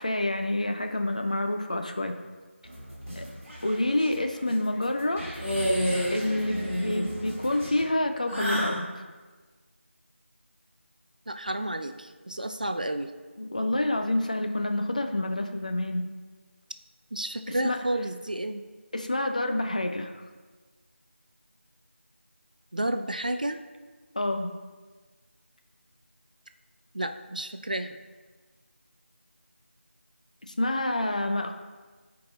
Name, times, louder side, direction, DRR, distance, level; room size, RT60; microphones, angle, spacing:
voice 1, 0.0-2.1 3.2-3.3 3.6-5.2 6.1-8.9 13.4-16.1 17.5-17.8 18.9-20.1 24.1-24.5 30.6-31.5, left 1 dB, 35° left, 5 dB, 0.5 m, -28 dB
sound 1, 2.6-7.8, equal, 15° right, 2.2 m, -40 dB
sound 2, 5.4-6.2 6.5-7.1 8.3-8.8, equal, 5° left, 1.7 m, -28 dB
voice 2, 11.3-13.1 17.1-18.6 22.7-23.6 26.9-28.0, right 1 dB, 40° right, 8 dB, 0.3 m, -31 dB
13.5 x 4.7 x 2.5 m, 1.4 s
figure-of-eight pair, 170°, 7 cm